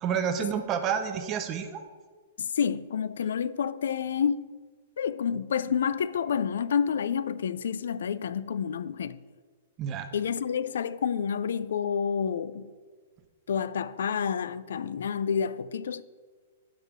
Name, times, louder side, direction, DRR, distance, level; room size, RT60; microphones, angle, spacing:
voice 1, 0.0-1.8 9.8-10.1, right 7 dB, 25° right, 0.5 m, -29 dB
voice 2, 2.4-4.5 5.0-9.2 10.1-12.7 13.5-16.0, left 7 dB, 85° left, 0.3 m, -29 dB
6.5 x 5.0 x 6.0 m
hypercardioid pair, 155°, 0 cm